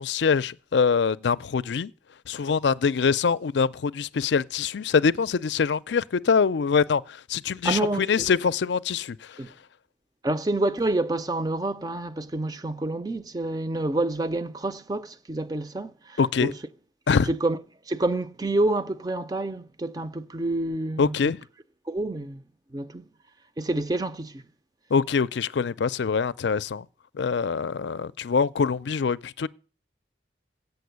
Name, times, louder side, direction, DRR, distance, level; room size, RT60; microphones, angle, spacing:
voice 1, 0.0-1.9 2.3-7.0 7.3-9.2 16.2-16.5 17.1-17.3 21.0-21.4 24.9-26.9 27.1-29.5, left 5 dB, 70° left, 0.4 m, -24 dB
voice 2, 7.6-8.3 9.4-9.5 10.2-16.5 17.2-17.6 17.9-21.2 21.9-22.4 22.7-23.0 23.6-24.4, right 2 dB, 20° right, 0.5 m, -28 dB
8.5 x 6.8 x 8.0 m
head